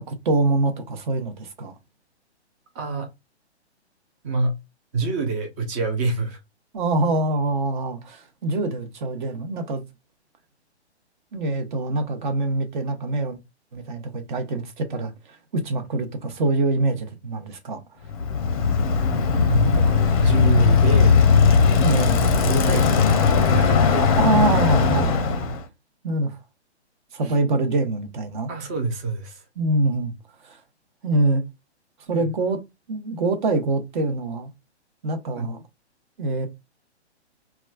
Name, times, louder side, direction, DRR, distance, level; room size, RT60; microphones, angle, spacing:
voice 1, 0.1-1.7 6.7-9.8 11.3-13.4 13.7-17.8 21.8-22.2 24.2-25.2 26.0-26.4 27.1-28.5 29.6-30.1 30.4-30.6 31.0-31.4 32.0-32.6 32.9-34.5 35.0-35.6 36.2-36.5, right 2 dB, 45° right, 0.9 m, -24 dB
voice 2, 2.7-3.1 4.2-4.6 4.9-6.4 19.5-21.1 22.4-24.1 27.2-27.3 28.5-29.4 32.1-32.3 35.4-35.5, right 3 dB, 15° right, 0.4 m, -26 dB
Bicycle, 18.1-25.6, left 5 dB, 30° left, 0.6 m, -18 dB
4.0 x 2.3 x 2.3 m
figure-of-eight pair, 130°, 34 cm